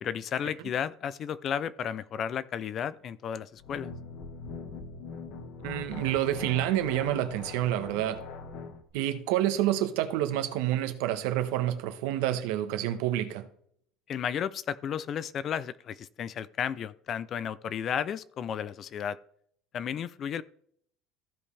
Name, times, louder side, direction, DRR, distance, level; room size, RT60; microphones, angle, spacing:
voice 1, 0.0-3.9 14.1-19.2 19.7-20.4, left 8 dB, 30° left, 0.4 m, -33 dB
sound 1, 3.6-8.8, left 3 dB, 50° left, 1.4 m, -42 dB
voice 2, 5.6-8.2 8.9-13.5, right 13 dB, 75° right, 1.1 m, -28 dB
15.0 x 5.3 x 3.3 m
cardioid pair, 175°, 0 cm